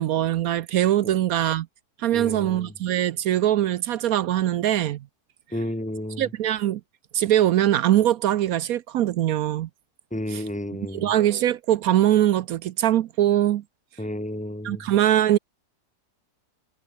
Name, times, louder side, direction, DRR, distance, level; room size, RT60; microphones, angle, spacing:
voice 1, 0.0-1.7 2.0-5.0 6.2-6.8 7.1-9.7 10.9-13.6 14.6-15.4, right 12 dB, 70° right, 1.0 m, -22 dB
voice 2, 2.1-2.7 5.5-6.3 10.1-11.1 14.0-14.9, left 1 dB, 5° left, 1.0 m, -32 dB
omnidirectional pair, 1.8 m